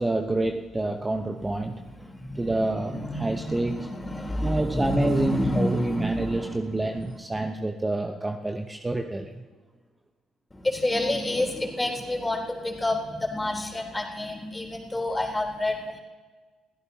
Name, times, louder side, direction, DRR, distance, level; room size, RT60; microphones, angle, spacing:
voice 1, 0.0-1.8 2.4-3.9 4.4-9.4, right 2 dB, 20° right, 5 dB, 1.0 m, -28 dB
voice 2, 1.9-6.7 10.5-15.8, left 1 dB, 15° left, 0 dB, 3.7 m, -29 dB
29.0 x 15.5 x 2.9 m, 1.4 s
hypercardioid pair, 50°, 0 cm